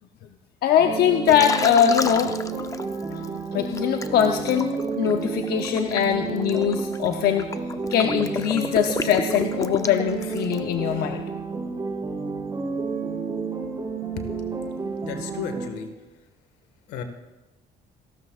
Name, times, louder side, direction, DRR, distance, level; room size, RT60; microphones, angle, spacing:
voice 1, 0.6-4.7 5.0-7.5 7.9-11.2, left 9 dB, 65° left, 5 dB, 0.8 m, -22 dB
sound 1, 0.8-15.7, right 4 dB, 25° right, 5.2 m, -31 dB
Liquid, 1.3-3.3 3.8-10.7, left 4 dB, 20° left, 0.7 m, -32 dB
voice 2, 15.0-15.9 16.9-17.0, left 7 dB, 85° left, 6 dB, 1.7 m, -33 dB
28.0 x 12.5 x 2.5 m, 1.1 s
cardioid pair, 110°, 17 cm